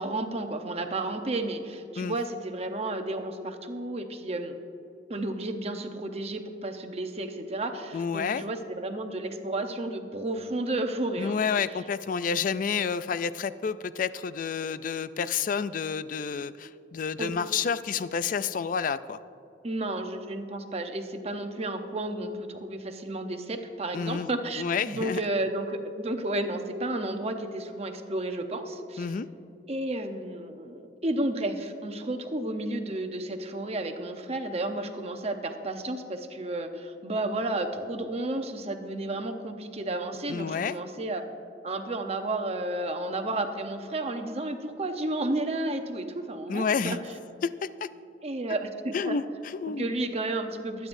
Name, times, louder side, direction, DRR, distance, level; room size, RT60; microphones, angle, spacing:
voice 1, 0.0-4.6 5.1-11.4 17.2-17.3 19.6-29.1 29.7-41.2 41.6-47.0 48.2-49.2 49.7-50.9, right 2 dB, 35° right, 6 dB, 0.8 m, -32 dB
voice 2, 7.9-8.4 11.2-19.2 23.9-24.3 24.6-25.2 29.0-29.3 40.3-40.8 46.5-47.0 47.4-47.9 48.9-49.9, left 6 dB, 50° left, 15 dB, 0.4 m, -29 dB
23.0 x 9.3 x 2.6 m, 2.7 s
head